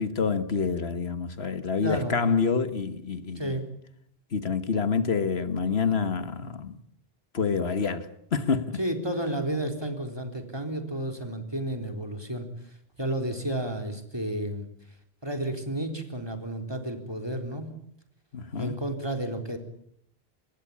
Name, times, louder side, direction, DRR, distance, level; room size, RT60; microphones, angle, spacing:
voice 1, 0.0-3.6 4.3-6.8 7.3-8.8 18.3-18.7, left 5 dB, 80° left, 1.7 m, -27 dB
voice 2, 1.8-2.2 3.4-3.6 8.8-12.5 13.0-14.6 15.2-17.7 18.6-19.6, right 1 dB, 25° right, 3.9 m, -31 dB
25.5 x 20.5 x 8.7 m
omnidirectional pair, 1.0 m